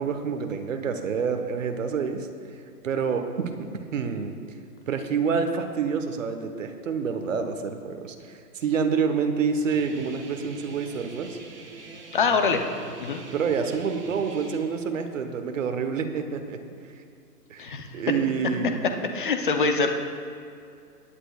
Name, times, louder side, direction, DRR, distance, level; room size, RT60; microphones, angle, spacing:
voice 1, 0.0-4.3 4.9-11.4 13.3-16.6 17.5-18.9, right 6 dB, 50° right, 6 dB, 1.1 m, -28 dB
Guitar, 9.7-14.6, right 3 dB, 85° right, 3.0 m, -44 dB
voice 2, 12.1-12.6 13.0-13.2 17.6-17.9 19.1-19.9, left 4 dB, 30° left, 5 dB, 0.7 m, -24 dB
19.0 x 10.5 x 2.4 m, 2.4 s
hypercardioid pair, 165°, 48 cm